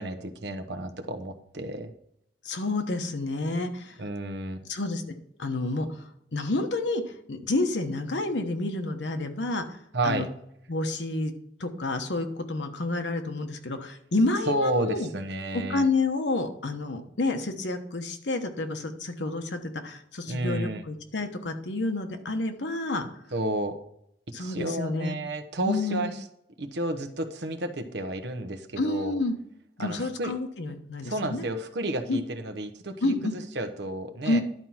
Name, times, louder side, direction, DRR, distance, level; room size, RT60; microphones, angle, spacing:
voice 1, 0.0-1.9 4.0-4.6 9.9-10.3 14.5-15.9 20.2-20.8 23.3-23.8 24.4-26.2 26.6-29.2 29.8-30.3 31.0-34.4, right 1 dB, 75° right, 6 dB, 1.0 m, -31 dB
voice 2, 2.4-3.9 4.7-5.0 5.4-6.0 6.3-7.0 7.3-9.8 10.0-10.3 10.7-11.3 11.6-15.1 15.5-23.1 24.3-25.2 25.6-26.1 28.8-29.3 29.8-31.4 32.1-32.2 33.0-33.3 34.2-34.4, left 2 dB, 90° left, 6 dB, 1.1 m, -29 dB
11.0 x 4.6 x 5.7 m, 0.75 s
head